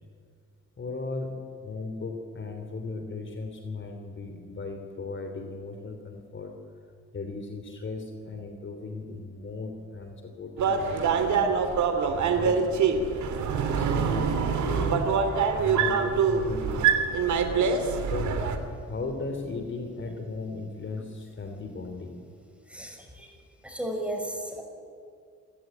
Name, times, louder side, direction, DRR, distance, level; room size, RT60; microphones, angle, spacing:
voice 1, 0.8-1.3 1.6-6.5 7.1-11.6 12.3-12.6 13.7-15.1 15.6-17.0 17.4-17.7 18.0-18.4 18.8-22.2, left 3 dB, 40° left, 4 dB, 3.3 m, -36 dB
sound 1, 10.6-18.6, right 6 dB, 70° right, 2.8 m, -25 dB
voice 2, 22.7-23.3 23.6-24.6, right 1 dB, 5° right, 3 dB, 6.2 m, -34 dB
27.5 x 15.5 x 9.2 m, 2.4 s
cardioid pair, 90°, 30 cm